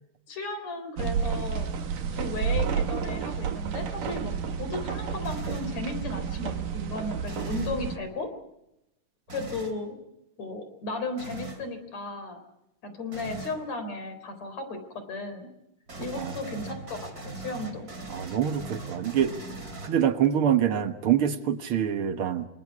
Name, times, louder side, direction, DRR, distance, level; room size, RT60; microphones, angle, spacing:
voice 1, 0.3-1.7 2.1-4.3 4.6-8.3 9.3-10.0 10.4-12.4 12.8-14.8 15.1-15.5 16.0-17.9, left 2 dB, 55° left, 8 dB, 5.3 m, -35 dB
sound 1, 1.0-8.0, right 7 dB, 80° right, 3.6 m, -31 dB
sound 2, 5.2-5.8 7.2-7.8 9.3-9.8 11.2-11.7 13.1-13.6 15.9-20.3, right 3 dB, 25° right, 3.6 m, -40 dB
voice 2, 18.1-19.3 19.8-22.5, right 9 dB, 55° right, 9 dB, 1.8 m, -25 dB
28.0 x 27.0 x 4.8 m, 0.85 s
omnidirectional pair, 3.8 m